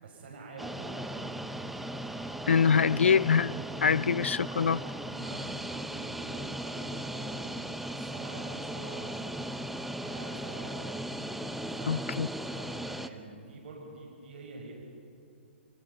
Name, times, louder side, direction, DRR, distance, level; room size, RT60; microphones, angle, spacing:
voice 1, 0.0-1.5 5.1-9.4 10.0-11.0 11.7-12.1 12.5-14.7, right 3 dB, 55° right, 6.1 m, -47 dB
sound 1, 0.6-13.1, right 1 dB, 5° right, 0.8 m, -37 dB
voice 2, 2.5-4.8 11.9-12.3, left 6 dB, 80° left, 0.6 m, -24 dB
28.5 x 25.0 x 5.6 m
hypercardioid pair, 130°, 7 cm